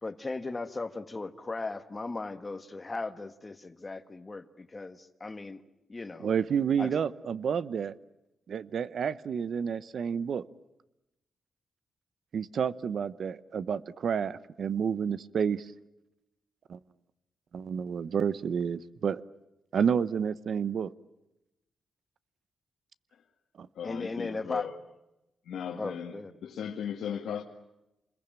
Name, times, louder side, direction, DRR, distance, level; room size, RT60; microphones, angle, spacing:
voice 1, 0.0-5.6 5.9-6.3 6.8-6.9 23.8-24.7 25.8-26.3, left 3 dB, 25° left, 10 dB, 1.4 m, -37 dB
voice 2, 6.2-7.9 8.5-10.4 12.3-15.7 16.7-16.8 17.5-19.2 19.7-20.9 23.6-23.7, right 7 dB, 60° right, 17 dB, 0.9 m, -30 dB
voice 3, 23.8-24.7 25.5-27.4, left 8 dB, 85° left, 1 dB, 2.0 m, -36 dB
28.0 x 21.5 x 8.9 m, 0.94 s
cardioid pair, 120°, 0 cm